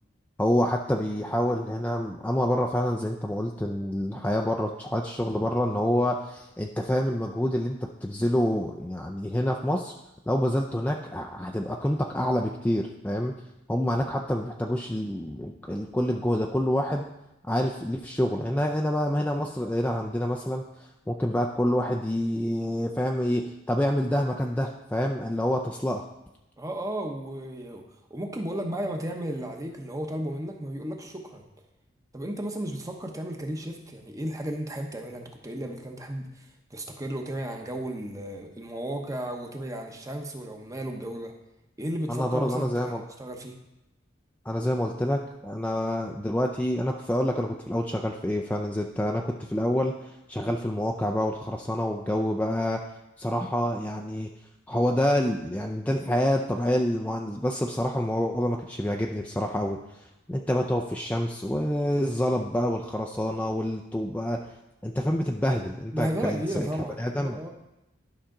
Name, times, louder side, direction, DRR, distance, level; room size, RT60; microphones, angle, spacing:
voice 1, 0.4-9.9 10.3-13.3 13.7-17.1 17.5-26.1 42.1-43.0 44.5-52.8 53.2-54.3 54.7-64.4 64.8-66.7 67.0-67.5, left 1 dB, 10° left, 1 dB, 0.4 m, -27 dB
voice 2, 26.6-27.8 28.1-31.4 32.1-41.3 41.8-43.5 65.9-67.5, right 1 dB, 15° right, 3 dB, 0.9 m, -34 dB
11.5 x 5.7 x 3.8 m, 0.93 s
head